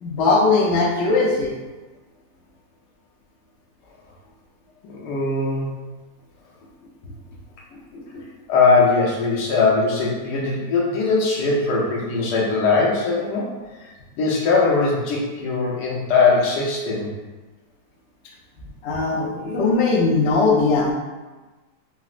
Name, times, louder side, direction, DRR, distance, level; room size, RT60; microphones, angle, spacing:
voice 1, 0.0-1.6 7.9-8.2 18.8-20.9, left 3 dB, 60° left, -3 dB, 0.7 m, -19 dB
voice 2, 5.0-5.7 8.5-13.5 14.2-17.1, left 4 dB, 75° left, -3 dB, 1.3 m, -20 dB
4.8 x 2.0 x 2.4 m, 1.2 s
omnidirectional pair, 1.8 m